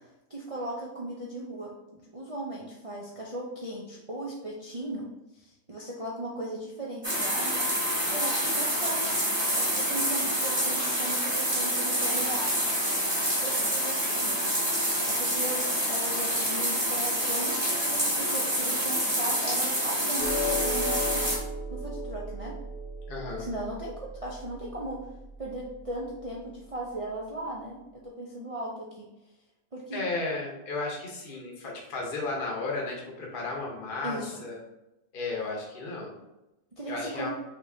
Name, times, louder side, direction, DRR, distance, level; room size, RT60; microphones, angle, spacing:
voice 1, 0.3-7.6 8.1-9.2 9.5-12.6 13.3-14.5 15.1-21.3 21.7-22.6 23.4-25.1 25.4-29.1 29.7-30.0 34.0-34.4 36.8-37.3, right 1 dB, 60° right, -4 dB, 0.3 m, -37 dB
sound 1, 7.0-21.4, equal, 20° right, 1.2 m, -27 dB
sound 2, 20.2-26.7, left 1 dB, 65° left, 0.6 m, -36 dB
voice 2, 23.1-23.5 29.9-34.6 35.1-36.2 36.9-37.3, left 3 dB, 40° left, -2 dB, 1.0 m, -34 dB
5.2 x 3.1 x 2.7 m, 0.93 s
omnidirectional pair, 1.6 m